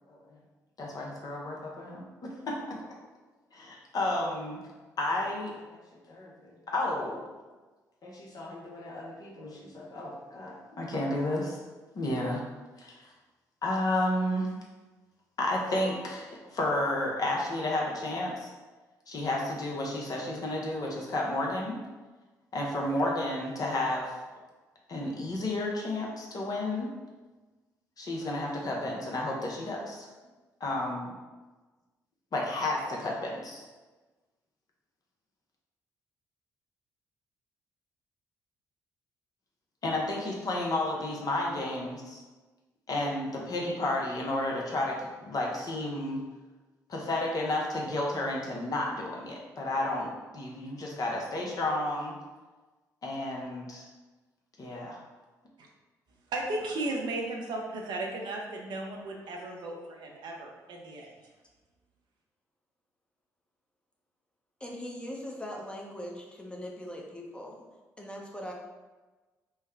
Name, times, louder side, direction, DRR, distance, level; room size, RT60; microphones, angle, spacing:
voice 1, 0.8-2.6 3.5-4.6 5.0-5.8 6.1-7.2 8.0-11.6 11.9-12.4 12.8-13.1 13.6-14.5 15.4-18.5 19.1-21.8 22.5-24.1 24.9-26.9 28.0-30.1 30.6-31.0 32.3-33.6 39.8-42.2 42.9-46.2 46.9-52.1 53.0-53.9 54.6-55.0, left 1 dB, 45° left, -2 dB, 0.8 m, -32 dB
voice 2, 56.3-61.1, right 2 dB, 60° right, 0 dB, 0.6 m, -35 dB
voice 3, 64.6-67.6 68.0-68.5, equal, 10° left, -1 dB, 0.8 m, -40 dB
3.4 x 2.1 x 3.4 m, 1.2 s
hypercardioid pair, 45°, 9 cm